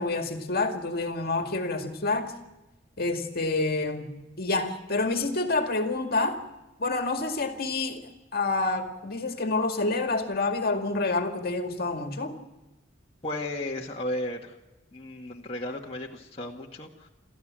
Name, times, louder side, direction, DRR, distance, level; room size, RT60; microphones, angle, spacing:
voice 1, 0.0-2.3 3.0-6.4 6.8-12.3, left 3 dB, 55° left, 5 dB, 2.2 m, -28 dB
voice 2, 13.2-14.6 14.9-17.1, left 1 dB, 30° left, -2 dB, 1.8 m, -34 dB
29.0 x 14.0 x 7.6 m, 1.0 s
head